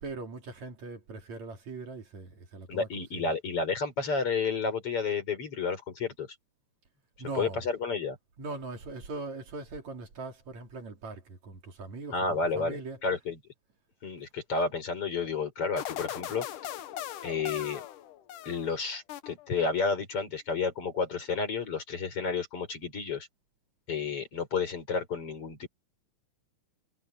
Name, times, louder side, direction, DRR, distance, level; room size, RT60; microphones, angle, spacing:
voice 1, 0.0-3.4 7.2-7.7 8.4-13.0, right 3 dB, 60° right, 4.6 m, -41 dB
voice 2, 2.7-6.3 7.3-8.2 12.1-13.4 14.0-16.7 17.2-17.8 18.4-23.3 23.9-25.7, left 4 dB, 45° left, 6.1 m, -31 dB
sound 1, 15.8-18.7 19.1-19.7, left 11 dB, 85° left, 2.6 m, -39 dB
omnidirectional pair, 3.6 m